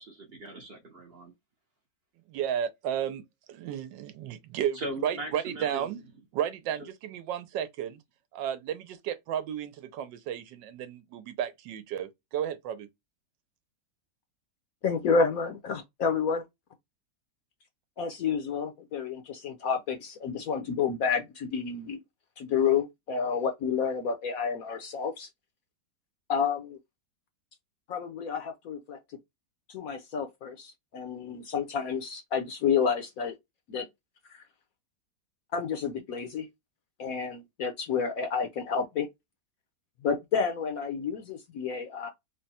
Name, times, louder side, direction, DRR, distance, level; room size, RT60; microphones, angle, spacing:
voice 1, 0.0-1.3 4.7-5.9, right 1 dB, 50° right, 0.8 m, -39 dB
voice 2, 2.3-3.2 3.5-6.0 6.3-8.0 8.3-12.9, right 9 dB, 80° right, 1.3 m, -33 dB
voice 3, 14.8-16.4 18.0-22.0 22.4-25.3 26.3-26.8 27.9-29.0 29.7-33.3 33.7-33.9 34.3-34.4 35.5-36.5 37.0-39.1 40.0-42.1, left 6 dB, 65° left, 1.0 m, -30 dB
3.7 x 2.1 x 4.1 m
omnidirectional pair, 1.9 m